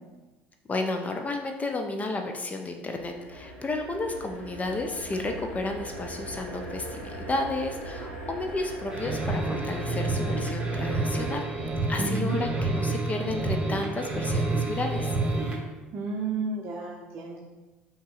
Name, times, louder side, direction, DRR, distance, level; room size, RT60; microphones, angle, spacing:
voice 1, 0.7-11.5 11.9-15.2, left 2 dB, 25° left, 4 dB, 0.4 m, -32 dB
sound 1, 2.9-11.4, right 1 dB, 75° left, 1.5 m, -39 dB
sound 2, 8.9-15.6, right 2 dB, 15° right, 0.9 m, -28 dB
voice 2, 12.0-12.4 15.9-17.4, right 4 dB, 40° right, -2 dB, 0.6 m, -32 dB
5.2 x 2.9 x 2.5 m, 1.2 s
figure-of-eight pair, 65°, 6 cm